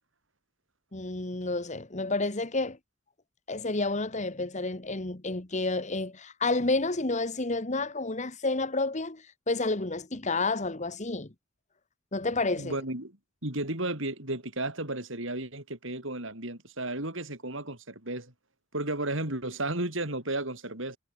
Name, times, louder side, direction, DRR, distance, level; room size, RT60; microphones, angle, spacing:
voice 1, 0.9-2.8 3.5-11.3 12.1-12.7, left 3 dB, 35° left, 1.4 m, -30 dB
voice 2, 12.6-13.2 13.4-18.3 18.7-21.0, right 2 dB, 60° right, 5.5 m, -33 dB
head